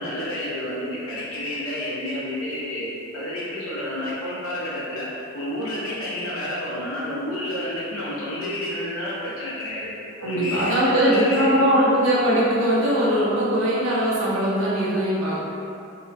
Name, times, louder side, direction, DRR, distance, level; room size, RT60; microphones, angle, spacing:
voice 1, 0.0-2.9 3.1-5.1 5.3-9.9 10.2-11.9, left 1 dB, 85° left, -8 dB, 0.7 m, -30 dB
voice 2, 10.2-15.3, equal, 70° right, -8 dB, 0.7 m, -20 dB
2.9 x 2.1 x 2.5 m, 2.7 s
head